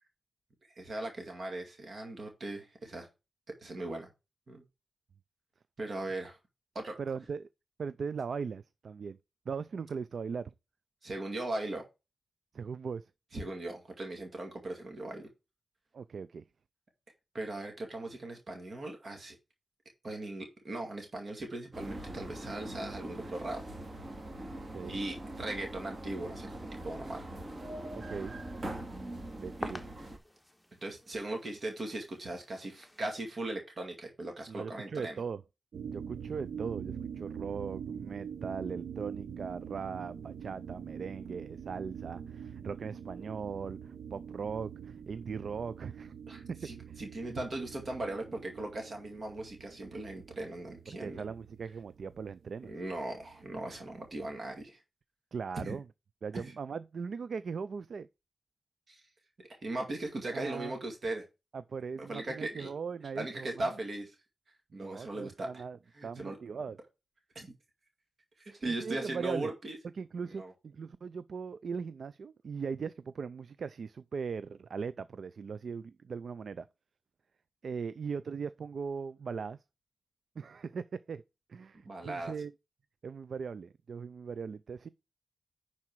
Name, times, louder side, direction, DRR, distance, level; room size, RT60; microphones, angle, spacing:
voice 1, 0.7-3.1 3.6-4.1 4.5-4.6 5.8-6.4 6.7-7.0 11.0-11.8 13.3-15.3 17.3-19.4 20.0-23.6 24.8-26.5 26.8-27.3 29.6-29.7 30.8-35.2 46.3-51.2 52.7-54.8 55.5-55.8 56.3-56.5 58.9-59.0 59.5-61.2 62.0-62.7 63.2-64.2 64.7-65.6 65.9-66.4 67.4-67.5 68.4-69.8 70.3-70.5 81.9-82.3, right 2 dB, 55° right, 2.2 m, -38 dB
voice 2, 7.0-7.5 7.8-9.2 9.5-10.5 12.5-13.1 15.9-16.4 24.5-25.0 27.9-28.3 29.4-29.9 34.5-35.4 35.9-46.1 46.9-47.4 50.9-52.7 55.3-55.8 56.2-58.1 60.3-60.7 61.5-63.7 64.7-65.8 66.0-66.8 68.5-69.5 69.9-76.7 77.6-79.6 80.4-81.2 81.5-82.5 83.0-84.9, right 5 dB, 70° right, 0.4 m, -39 dB
sound 1, 21.7-30.2, right 1 dB, 35° right, 2.4 m, -42 dB
sound 2, 28.2-33.3, left 1 dB, 5° left, 1.1 m, -49 dB
sound 3, 35.7-54.6, right 7 dB, 85° right, 0.7 m, -45 dB
10.5 x 4.3 x 4.6 m
wide cardioid pair, 100°, 0 cm